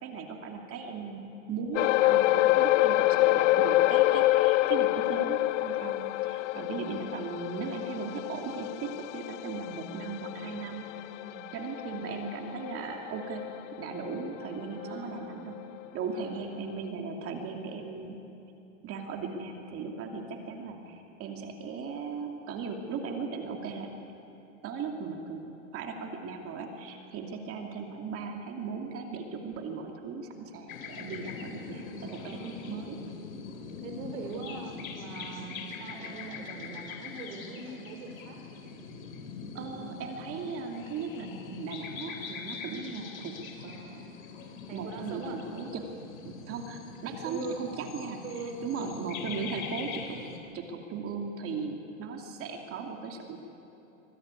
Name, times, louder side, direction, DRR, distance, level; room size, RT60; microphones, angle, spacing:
voice 1, 0.0-1.2 1.5-10.8 11.5-13.5 13.8-15.6 15.9-18.2 18.8-23.9 24.6-25.4 25.7-33.0 39.5-43.3 43.6-44.1 44.7-45.9 46.2-48.2 48.6-50.2 50.5-53.4, right 5 dB, 35° right, 3 dB, 2.6 m, -37 dB
sound 1, 1.7-14.4 14.8-15.0 15.5-15.6, left 17 dB, 65° left, 0.6 m, -27 dB
voice 2, 2.7-3.1 6.5-6.9 11.0-11.5 11.8-11.9 14.7-15.5 16.1-16.5 31.2-31.8 32.1-32.6 33.8-38.4 44.7-45.4 47.2-47.6 48.2-49.0, right 3 dB, 70° right, 4 dB, 4.1 m, -43 dB
sound 2, 30.7-50.4, left 5 dB, 85° left, 3.6 m, -42 dB
25.0 x 20.5 x 9.7 m, 2.9 s
supercardioid pair, 135°, 40 cm